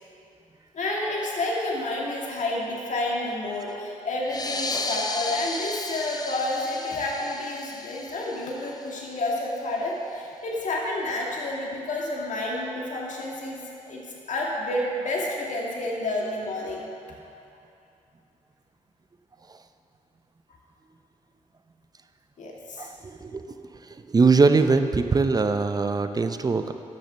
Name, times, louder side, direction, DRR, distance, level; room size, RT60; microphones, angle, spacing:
voice 1, 0.7-14.0 14.3-16.9 22.4-22.9, left 2 dB, 60° left, -3 dB, 2.1 m, -30 dB
sound 1, 4.2-9.3, left 3 dB, 30° left, 0.7 m, -34 dB
voice 2, 22.8-23.6 23.9-26.7, right 4 dB, 30° right, 8 dB, 0.6 m, -22 dB
10.0 x 6.6 x 6.7 m, 2.7 s
cardioid pair, 65°, 14 cm